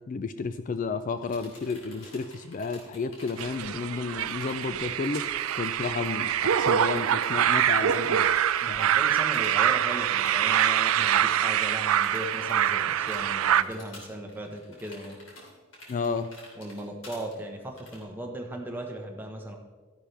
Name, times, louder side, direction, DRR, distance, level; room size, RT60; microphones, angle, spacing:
voice 1, 0.1-5.2 5.6-8.4 8.7-9.0 15.9-16.3, left 4 dB, 40° left, 10 dB, 0.4 m, -32 dB
sound 1, 1.0-9.5 9.8-9.9 10.2-10.7 11.1-18.0, left 1 dB, 70° left, 3.0 m, -50 dB
sound 2, 3.4-13.6, right 10 dB, 90° right, 0.4 m, -25 dB
voice 2, 8.6-15.2 16.6-19.6, right 1 dB, 10° right, 1 dB, 1.2 m, -37 dB
13.0 x 10.0 x 3.4 m, 1.4 s
head